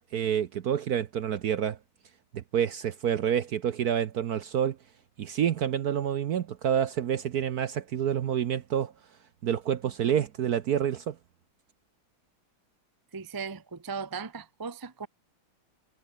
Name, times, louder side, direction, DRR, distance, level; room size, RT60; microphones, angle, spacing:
voice 1, 0.0-1.8 2.3-4.8 5.2-8.9 9.4-11.2, right 9 dB, 60° right, 1.1 m, -28 dB
voice 2, 13.1-15.1, right 5 dB, 25° right, 0.5 m, -37 dB
omnidirectional pair, 2.3 m